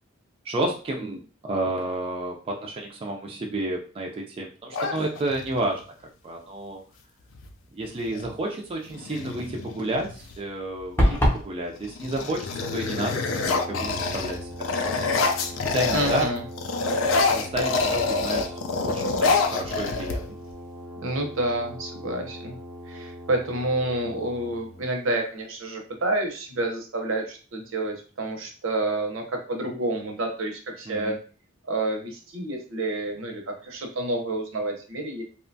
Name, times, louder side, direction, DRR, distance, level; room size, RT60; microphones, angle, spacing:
voice 1, 0.5-5.8 6.2-6.8 7.7-11.2 11.4-14.7 15.6-16.3 17.3-18.5 18.8-20.2 30.9-31.2, right 1 dB, 30° right, 0 dB, 0.3 m, -30 dB
sound 1, 4.7-5.7 7.3-7.5 7.8-8.3 8.9-10.4 11.0-11.4 11.8-16.3 16.6-20.5, left 4 dB, 70° left, 0.4 m, -27 dB
sound 2, 11.0-11.5, equal, 10° left, 0.6 m, -19 dB
Brass instrument, 12.6-24.8, equal, 90° left, 0.9 m, -40 dB
voice 2, 15.9-16.4 21.0-22.6 22.9-31.1 31.6-35.2, right 2 dB, 75° right, 3 dB, 0.7 m, -29 dB
2.8 x 2.2 x 2.6 m, 0.38 s
head